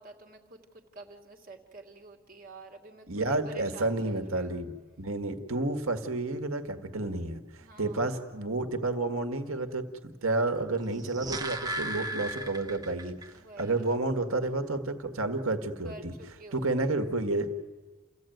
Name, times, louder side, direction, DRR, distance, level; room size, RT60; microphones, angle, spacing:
voice 1, 0.0-4.7 7.6-8.2 13.3-13.9 15.8-17.0, right 3 dB, 40° right, 2 dB, 2.7 m, -49 dB
voice 2, 3.1-13.2 13.6-16.1 16.5-17.5, right 2 dB, 70° right, 6 dB, 1.7 m, -30 dB
sound 1, 10.8-13.3 13.6-13.7, right 1 dB, 15° right, 1.1 m, -36 dB
29.5 x 15.0 x 9.3 m, 1.3 s
head